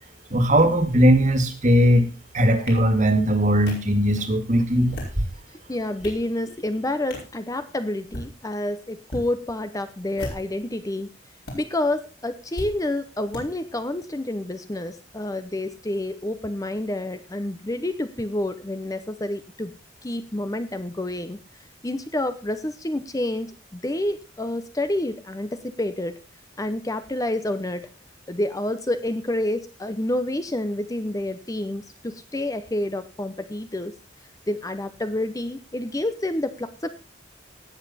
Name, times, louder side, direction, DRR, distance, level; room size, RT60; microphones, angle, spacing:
voice 1, 0.3-2.1 2.3-5.2, equal, 40° right, 8 dB, 2.0 m, -19 dB
sound 1, 2.7-2.8 3.7-3.8 4.7-5.2 5.7-6.2 7.1-7.3 8.0-8.3 9.0-9.2 10.1-10.6 11.4-11.5 12.5-12.7 13.3-13.4, equal, 60° left, 5.1 m, -35 dB
voice 2, 5.5-11.1 11.5-19.7 20.0-21.4 21.8-26.1 26.6-27.9 28.3-33.9 34.5-36.9, left 1 dB, 20° left, 10 dB, 0.7 m, -28 dB
18.0 x 7.4 x 4.2 m, 0.32 s
head